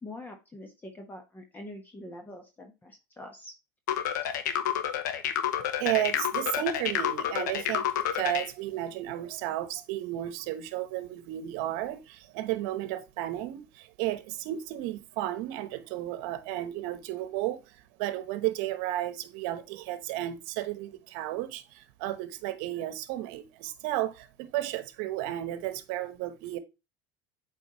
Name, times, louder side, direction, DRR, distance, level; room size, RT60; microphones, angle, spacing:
voice 1, 0.0-3.5, left 1 dB, 20° left, 1.2 m, -44 dB
sound 1, 3.9-8.5, left 10 dB, 85° left, 0.8 m, -29 dB
voice 2, 5.8-26.6, right 14 dB, 70° right, 1.0 m, -33 dB
8.0 x 4.2 x 3.0 m
supercardioid pair, 100°, 10 cm